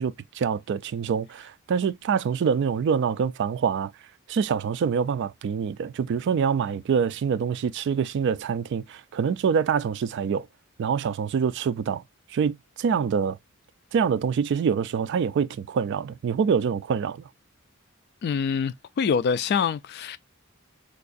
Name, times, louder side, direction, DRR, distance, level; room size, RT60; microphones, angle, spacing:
voice 1, 0.0-3.9 4.3-10.5 10.8-12.0 12.3-13.4 13.9-17.2, right 6 dB, 55° right, 0.3 m, -25 dB
voice 2, 18.2-20.2, left 6 dB, 50° left, 0.3 m, -25 dB
4.5 x 2.4 x 2.5 m
head